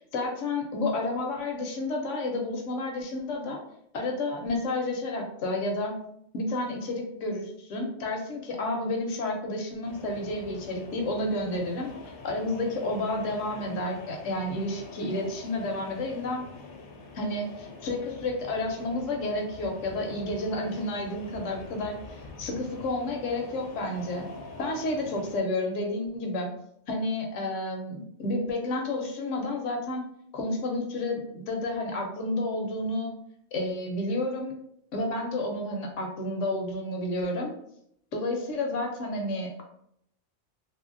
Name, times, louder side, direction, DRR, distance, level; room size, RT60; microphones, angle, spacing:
voice 1, 0.0-3.6 3.9-5.9 6.3-16.4 17.1-24.3 24.6-26.5 26.9-30.0 30.3-33.1 33.5-34.5 34.9-37.5 38.1-39.6, left 2 dB, 80° left, 2 dB, 1.0 m, -31 dB
sound 1, 9.8-25.4, left 3 dB, 60° left, 0.7 m, -45 dB
2.7 x 2.7 x 2.5 m, 0.72 s
omnidirectional pair, 1.3 m